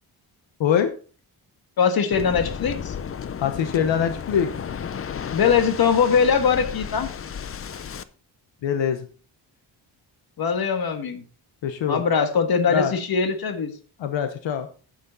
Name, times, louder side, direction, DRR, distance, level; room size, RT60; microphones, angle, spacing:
voice 1, 0.6-0.9 3.4-4.5 8.6-9.1 11.6-12.0 12.7-12.9 14.0-14.7, left 8 dB, 80° left, 8 dB, 1.0 m, -23 dB
voice 2, 1.8-2.9 5.3-7.1 10.4-11.2 11.9-13.7, left 6 dB, 55° left, 7 dB, 1.6 m, -21 dB
Waves surf, 2.1-8.0, left 7 dB, 30° left, 0.5 m, -33 dB
9.4 x 8.5 x 4.0 m, 0.37 s
wide cardioid pair, 160°, 44 cm